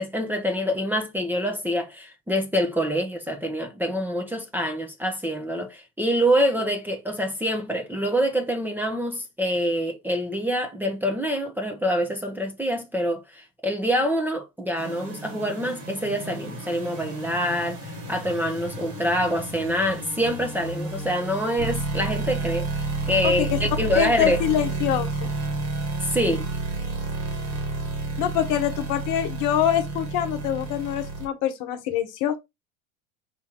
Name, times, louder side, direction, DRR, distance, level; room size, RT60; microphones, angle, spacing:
voice 1, 0.0-22.7 23.1-24.4 26.0-26.4, equal, 5° right, 0.8 m, -26 dB
sound 1, 14.8-31.3, right 2 dB, 45° right, 2.0 m, -31 dB
voice 2, 23.2-23.6 23.9-25.3 28.2-32.4, left 11 dB, 50° left, 1.1 m, -25 dB
4.8 x 2.7 x 3.6 m
hypercardioid pair, 90°, 40 cm